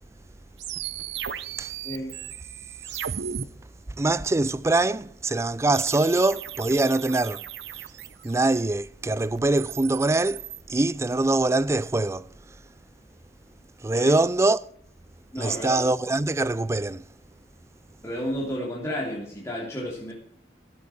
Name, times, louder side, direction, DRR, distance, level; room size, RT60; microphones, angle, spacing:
sound 1, 0.6-3.4 5.7-8.5 9.4-10.6, right 9 dB, 80° right, 0.7 m, -36 dB
voice 1, 1.8-2.1 13.9-14.1 15.3-15.9 18.0-20.1, equal, 15° left, 2.9 m, -32 dB
voice 2, 3.9-7.5 8.2-12.6 13.8-14.6 15.4-17.0, right 2 dB, 15° right, 0.4 m, -24 dB
12.0 x 8.5 x 5.9 m
head